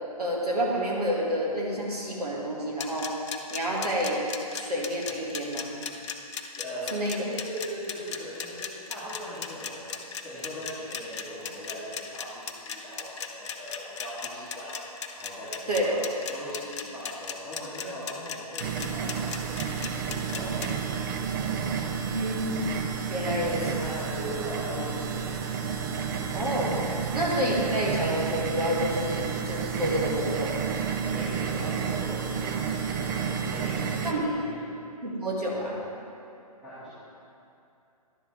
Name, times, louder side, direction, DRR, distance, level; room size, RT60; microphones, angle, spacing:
voice 1, 0.2-3.1 3.5-4.2 4.5-5.8 6.9-7.2 15.7-16.0 22.0-22.6 23.1-23.6 26.3-26.8 27.1-30.6 34.0-34.4 35.0-35.8, equal, 80° right, -4 dB, 2.0 m, -29 dB
sound 1, 2.8-20.7, left 7 dB, 50° left, 0.7 m, -36 dB
voice 2, 6.6-9.9 10.2-14.7 15.1-16.0 16.2-21.1 21.4-21.8 23.1-25.4 31.1-34.3 36.6-36.9, equal, ahead, -15 dB, 1.8 m, -40 dB
sound 2, 18.6-34.1, right 6 dB, 35° right, 0.5 m, -31 dB
10.5 x 7.1 x 3.4 m, 2.7 s
figure-of-eight pair, 135°, 20 cm